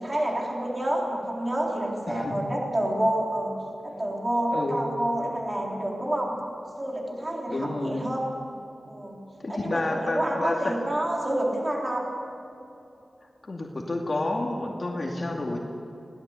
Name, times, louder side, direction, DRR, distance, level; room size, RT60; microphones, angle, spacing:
voice 1, 0.0-3.6 3.8-6.3 6.8-8.3 8.9-9.2 9.5-12.1, right 1 dB, 25° right, -2 dB, 3.6 m, -28 dB
voice 2, 2.1-2.4 4.5-4.8 7.5-8.1 9.4-10.8 13.4-15.6, left 2 dB, 40° left, 0 dB, 2.4 m, -29 dB
22.0 x 17.5 x 8.4 m, 2.7 s
wide cardioid pair, 100°, 0 cm